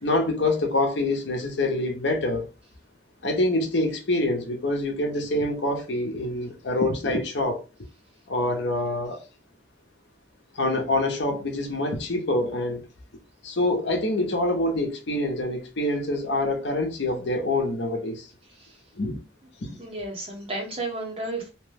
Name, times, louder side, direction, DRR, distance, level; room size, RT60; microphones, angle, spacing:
voice 1, 0.0-2.5 3.2-7.6 8.3-9.2 10.5-12.9 13.4-18.3 19.0-19.2, left 2 dB, 70° left, 0.7 m, -26 dB
voice 2, 19.8-21.5, right 2 dB, 30° right, 0.9 m, -33 dB
2.9 x 2.1 x 3.3 m
head